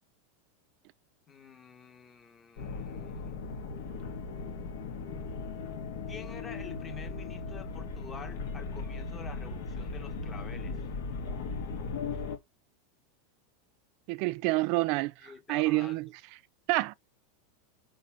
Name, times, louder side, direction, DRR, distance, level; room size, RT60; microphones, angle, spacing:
voice 1, 1.3-3.3 6.1-10.9 15.2-16.0, left 5 dB, 25° left, 1.7 m, -48 dB
sound 1, 2.6-12.4, left 4 dB, 75° left, 2.0 m, -37 dB
voice 2, 14.1-15.1 15.5-16.1 16.7-16.9, right 21 dB, 55° right, 0.4 m, -27 dB
5.1 x 4.1 x 6.0 m
hypercardioid pair, 110°, 0 cm